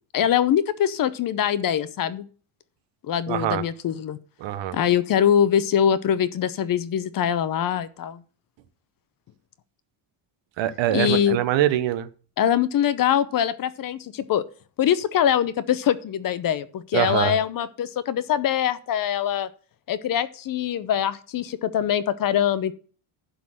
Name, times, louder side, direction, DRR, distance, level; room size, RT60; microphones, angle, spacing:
voice 1, 0.1-2.2 3.0-4.2 4.7-8.2 10.9-11.4 12.4-14.4 14.8-19.5 19.9-22.7, left 9 dB, 45° left, 0.8 m, -23 dB
voice 2, 3.3-3.6 4.4-4.8 10.6-12.1 16.9-17.4, right 13 dB, 65° right, 1.0 m, -23 dB
11.5 x 4.0 x 7.7 m
cardioid pair, 160°, 48 cm